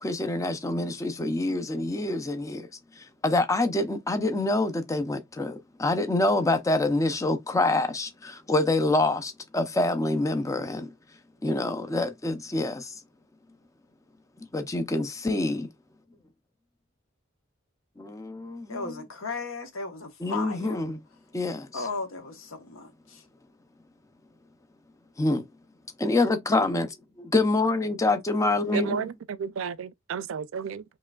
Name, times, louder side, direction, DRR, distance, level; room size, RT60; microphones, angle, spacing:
voice 1, 0.0-2.7 3.0-10.9 11.4-12.9 14.5-15.7 18.0-18.8 20.2-21.0 21.3-21.7 25.2-25.4 26.0-29.1, left 2 dB, 15° left, 0.5 m, -26 dB
voice 2, 18.7-20.9 21.7-23.2, left 4 dB, 80° left, 1.0 m, -36 dB
voice 3, 28.7-30.8, right 6 dB, 75° right, 0.4 m, -32 dB
4.8 x 3.0 x 2.3 m
head